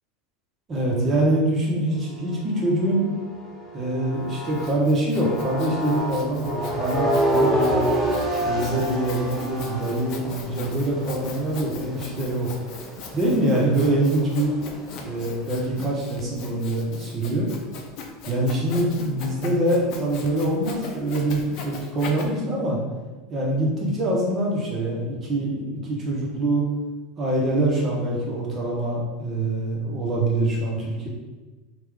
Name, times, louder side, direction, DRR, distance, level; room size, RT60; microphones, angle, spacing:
voice 1, 0.7-3.1 3.7-7.9 8.4-12.5 13.1-14.5 15.0-17.5 18.3-22.8 23.3-26.6 27.2-31.1, right 1 dB, 35° right, -3 dB, 1.2 m, -24 dB
sound 1, 1.9-4.8 5.1-15.6, equal, 10° right, 0.9 m, -29 dB
Sawing, 4.2-22.3, left 4 dB, 55° left, 0.5 m, -40 dB
3.0 x 2.5 x 3.7 m, 1.2 s
hypercardioid pair, 90°, 0 cm